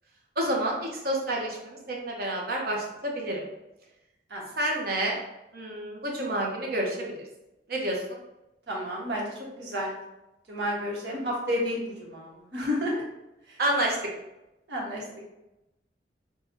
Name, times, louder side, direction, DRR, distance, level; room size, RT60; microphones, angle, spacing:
voice 1, 0.4-3.4 4.6-5.2 5.5-7.2 7.7-8.0 13.6-14.0, right 1 dB, 55° right, -1 dB, 1.0 m, -29 dB
voice 2, 8.7-9.9 10.5-13.0 13.5-13.6 14.7-15.0, equal, 75° right, -4 dB, 1.4 m, -31 dB
6.1 x 2.4 x 2.7 m, 0.94 s
head